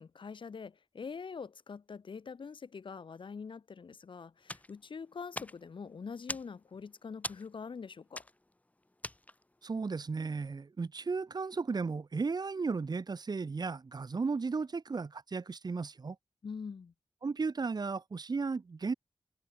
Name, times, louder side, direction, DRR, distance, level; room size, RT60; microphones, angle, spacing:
voice 1, 0.0-8.2 16.4-16.9, left 5 dB, 75° left, 3.7 m, -44 dB
sound 1, 4.4-9.6, left 1 dB, 15° left, 3.4 m, -45 dB
voice 2, 9.6-16.2 17.2-18.9, right 4 dB, 50° right, 2.6 m, -35 dB
wide cardioid pair, 115°, 9 cm